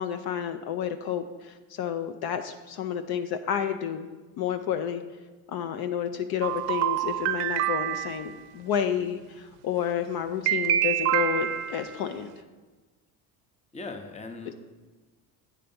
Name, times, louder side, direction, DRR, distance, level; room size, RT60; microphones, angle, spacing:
voice 1, 0.0-4.1 4.4-5.0 5.5-12.3, left 9 dB, 60° left, 8 dB, 0.5 m, -30 dB
sound 1, 6.4-8.3 10.5-12.0, right 12 dB, 65° right, 0.6 m, -27 dB
voice 2, 13.7-14.5, left 3 dB, 15° left, 6 dB, 0.6 m, -39 dB
8.8 x 3.3 x 5.3 m, 1.3 s
supercardioid pair, 90°, 43 cm